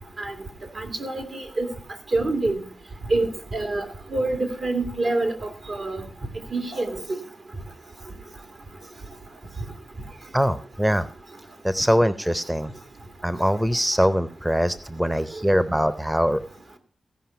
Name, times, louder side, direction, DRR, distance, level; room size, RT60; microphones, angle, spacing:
voice 1, 0.8-1.7 2.1-2.6 3.1-3.8 4.1-5.3 5.7-6.0 6.5-7.2, right 2 dB, 65° right, 6 dB, 2.3 m, -26 dB
voice 2, 10.3-11.1 11.6-12.7 13.2-16.4, equal, 10° right, 13 dB, 0.6 m, -22 dB
16.0 x 5.5 x 5.7 m, 0.41 s
wide cardioid pair, 80°, 0 cm